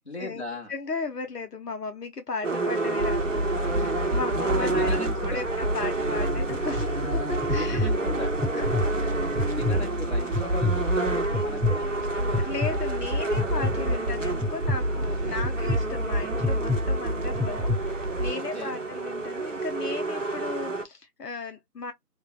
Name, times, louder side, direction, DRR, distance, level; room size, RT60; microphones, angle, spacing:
voice 1, 0.0-0.7 4.1-5.4 7.4-8.4 9.4-12.5 18.4-18.8, left 1 dB, 45° left, 1.1 m, -38 dB
voice 2, 0.7-7.9 8.5-8.7 12.4-21.9, left 4 dB, 80° left, 0.8 m, -36 dB
sound 1, 2.4-20.8, right 3 dB, 50° right, 0.7 m, -30 dB
sound 2, 3.0-18.3, equal, 80° right, 0.9 m, -30 dB
sound 3, 6.5-6.9 7.4-7.9 8.4-8.9 9.4-9.8 10.3-10.8 11.3-11.8 12.3-12.7 13.4-13.8 14.4-14.8 15.4-15.8 16.4-16.8 17.4-17.8, left 2 dB, 5° right, 0.4 m, -26 dB
3.2 x 2.2 x 2.3 m
figure-of-eight pair, 175°, 47 cm